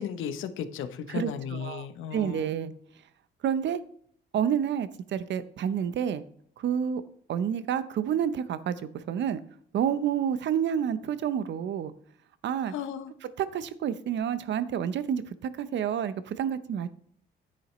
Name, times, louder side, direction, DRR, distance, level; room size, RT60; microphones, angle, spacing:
voice 1, 0.0-2.6 12.7-13.1, left 8 dB, 80° left, 10 dB, 0.8 m, -35 dB
voice 2, 1.1-1.9 2.1-2.7 3.4-3.8 4.3-6.2 6.6-7.0 7.3-9.4 9.7-11.9 12.4-12.7 13.4-16.9, right 8 dB, 65° right, 14 dB, 0.7 m, -29 dB
9.9 x 8.2 x 3.1 m, 0.63 s
cardioid pair, 90°, 20 cm